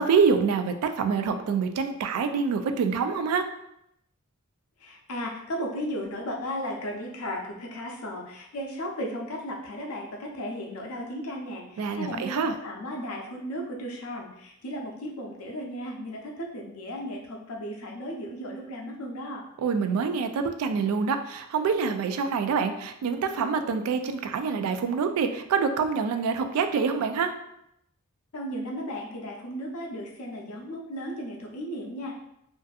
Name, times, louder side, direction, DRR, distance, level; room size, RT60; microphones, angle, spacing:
voice 1, 0.0-3.5 11.8-12.5 19.6-27.3, right 5 dB, 90° right, 11 dB, 0.3 m, -26 dB
voice 2, 4.8-19.4 28.3-32.2, equal, 80° left, 0 dB, 0.6 m, -35 dB
2.5 x 2.5 x 2.3 m, 0.80 s
head